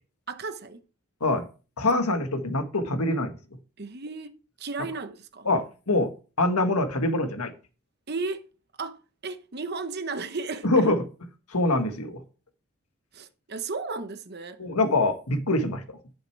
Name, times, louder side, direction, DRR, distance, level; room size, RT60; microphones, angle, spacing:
voice 1, 0.3-0.8 1.9-2.2 3.8-5.5 8.1-8.5 8.8-9.0 9.2-10.8 13.1-14.6, right 3 dB, 45° right, 0.9 m, -34 dB
voice 2, 1.8-3.3 5.4-6.1 6.4-7.5 10.6-11.0 11.5-12.2 14.6-16.0, left 2 dB, 85° left, 1.7 m, -24 dB
11.5 x 6.5 x 4.7 m
head